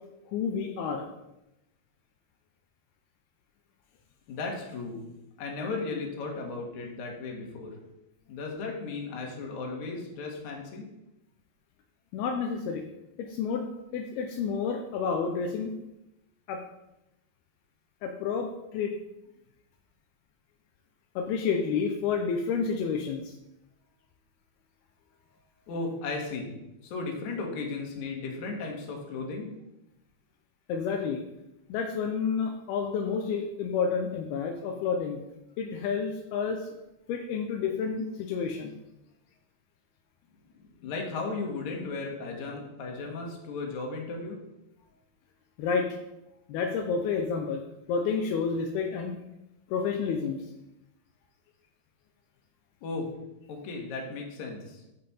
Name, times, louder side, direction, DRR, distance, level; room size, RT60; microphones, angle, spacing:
voice 1, 0.3-1.1 12.1-12.8 13.3-13.7 13.9-15.7 16.5-16.6 18.0-18.9 21.2-23.3 30.7-31.2 31.7-35.2 35.6-36.7 37.1-38.8 45.6-45.9 46.5-47.6 47.9-49.2 49.7-50.4, left 5 dB, 85° left, 3 dB, 2.2 m, -30 dB
voice 2, 4.3-5.0 5.4-7.7 8.3-10.9 25.7-29.5 40.6-44.4 52.8-53.1 53.5-54.8, left 3 dB, 55° left, 1 dB, 2.2 m, -35 dB
13.5 x 5.3 x 4.2 m, 0.91 s
omnidirectional pair, 5.3 m